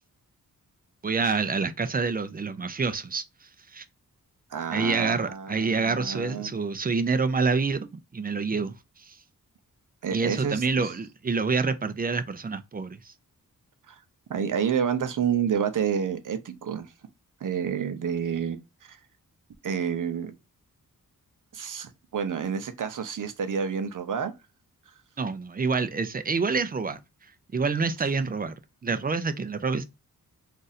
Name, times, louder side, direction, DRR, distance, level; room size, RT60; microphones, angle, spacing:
voice 1, 1.0-3.8 4.7-9.2 10.1-13.1 25.2-27.0 27.5-28.5 28.8-29.8, right 4 dB, 25° right, 0.4 m, -27 dB
voice 2, 4.5-6.6 10.0-10.9 13.9-14.0 14.3-16.9 17.4-19.0 19.6-20.3 21.5-24.3, right 7 dB, 60° right, 0.7 m, -29 dB
2.6 x 2.5 x 4.0 m
wide cardioid pair, 105°, 35 cm